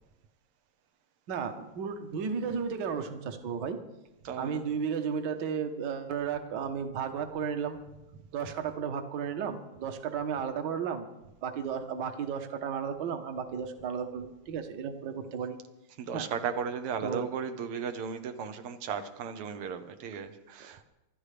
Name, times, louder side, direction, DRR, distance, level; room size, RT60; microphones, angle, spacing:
voice 1, 1.3-3.8 4.4-7.8 8.3-11.1 11.4-15.6 16.1-16.3 17.0-17.3, right 7 dB, 60° right, 6 dB, 1.6 m, -34 dB
voice 2, 4.2-4.6 15.1-15.3 16.0-20.8, right 6 dB, 90° right, 7 dB, 1.9 m, -36 dB
25.5 x 12.5 x 3.4 m, 0.97 s
omnidirectional pair, 2.4 m